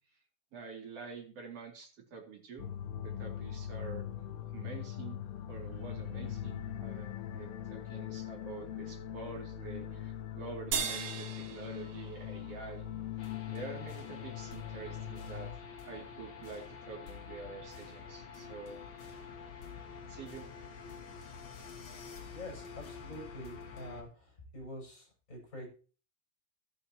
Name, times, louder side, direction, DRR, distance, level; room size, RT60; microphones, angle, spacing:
voice 1, 0.5-4.0 4.5-5.2 5.5-12.9 13.1-13.2 13.5-15.5 15.8-19.1 20.1-20.5, right 4 dB, 40° right, 1 dB, 3.1 m, -47 dB
sound 1, 2.6-15.5, left 10 dB, 70° left, 2.9 m, -41 dB
sound 2, 10.7-13.3, right 6 dB, 90° right, 4.0 m, -39 dB
sound 3, 13.2-24.0, left 6 dB, 45° left, 3.3 m, -48 dB
voice 2, 22.3-25.7, left 1 dB, 15° left, -1 dB, 7.3 m, -46 dB
14.0 x 8.9 x 2.9 m, 0.37 s
omnidirectional pair, 5.4 m